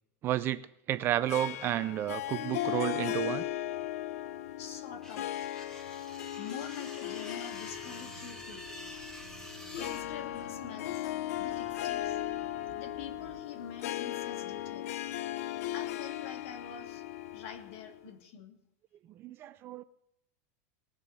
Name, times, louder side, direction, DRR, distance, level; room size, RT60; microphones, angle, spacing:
voice 1, 0.2-3.4 19.2-19.8, right 13 dB, 30° right, 15 dB, 0.5 m, -32 dB
Harp, 1.3-18.0, left 14 dB, 80° left, 0.7 m, -37 dB
voice 2, 4.6-5.4 5.9-8.7 9.7-11.1 11.4-12.2 12.7-14.9 15.7-17.0 17.3-18.6, left 7 dB, 60° left, 2 dB, 2.9 m, -46 dB
sound 1, 5.0-10.0, equal, 5° left, 2.0 m, -48 dB
sound 2, 7.5-13.4, right 11 dB, 55° right, 1.0 m, -55 dB
19.0 x 7.1 x 6.8 m, 0.79 s
supercardioid pair, 160°, 8 cm